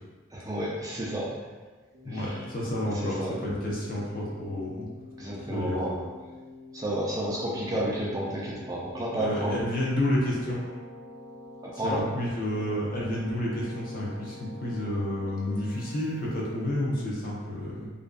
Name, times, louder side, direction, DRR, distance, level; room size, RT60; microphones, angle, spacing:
voice 1, 0.3-1.4 2.0-2.4 3.0-3.3 5.2-6.0 6.7-9.6 11.8-12.0, right 1 dB, 20° right, -5 dB, 0.3 m, -31 dB
Keyboard (musical), 1.9-17.0, left 2 dB, 60° right, 0.6 m, -47 dB
voice 2, 2.0-4.9 5.5-5.8 7.5-7.6 9.1-10.6 11.8-17.9, left 1 dB, 45° left, -4 dB, 0.5 m, -30 dB
2.5 x 2.2 x 2.2 m, 1.3 s
head